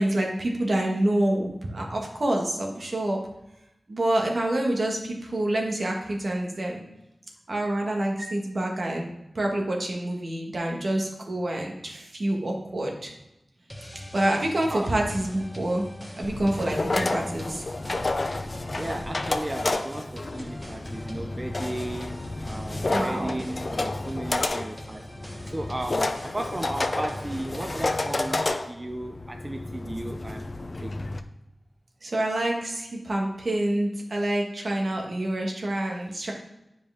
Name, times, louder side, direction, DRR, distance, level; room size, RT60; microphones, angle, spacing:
voice 1, 0.0-3.2 3.9-6.8 7.5-9.1 9.3-13.1 14.1-15.9 16.2-17.6 22.9-23.4 32.0-36.3, right 1 dB, 55° right, 1.6 m, -27 dB
sound 1, 13.7-28.5, equal, ahead, 1.4 m, -42 dB
sound 2, 16.2-31.2, left 2 dB, 45° left, 0.5 m, -30 dB
voice 2, 18.7-25.0 25.5-30.5 30.8-31.0, right 1 dB, 20° right, 0.4 m, -35 dB
9.5 x 5.1 x 3.5 m
wide cardioid pair, 80°, 0 cm